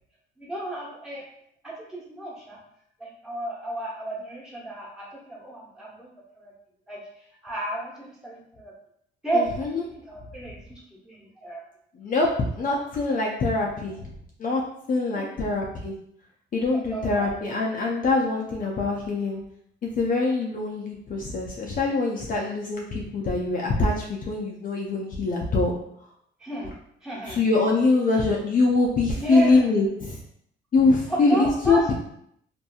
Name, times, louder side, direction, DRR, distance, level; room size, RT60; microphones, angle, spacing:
voice 1, 0.4-1.2 1.6-2.6 3.0-6.1 6.4-6.5 6.9-7.0 7.4-8.7 9.2-11.6 15.1-15.5 16.9-17.4 26.4-26.7 27.0-27.4 29.1-29.7 31.1-31.8, right 2 dB, 5° right, -5 dB, 1.1 m, -32 dB
voice 2, 9.3-9.8 12.0-14.1 14.4-14.6 14.9-15.9 16.5-19.4 19.8-25.7 27.3-30.2 30.7-31.9, left 3 dB, 45° left, -2 dB, 0.5 m, -24 dB
2.7 x 2.6 x 2.3 m, 0.71 s
cardioid pair, 90°, 20 cm